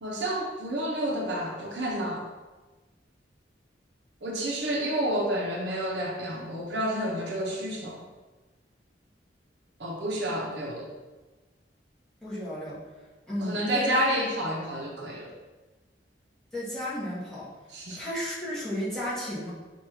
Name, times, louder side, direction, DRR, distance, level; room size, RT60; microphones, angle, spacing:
voice 1, 0.0-2.2 4.2-8.0 9.8-10.9 13.4-15.3 17.7-18.0, right 1 dB, 85° right, -2 dB, 0.9 m, -30 dB
voice 2, 12.2-12.8 13.3-14.1 16.5-17.5 18.0-19.5, left 1 dB, 5° left, -9 dB, 1.4 m, -33 dB
6.1 x 2.6 x 3.2 m, 1.2 s
head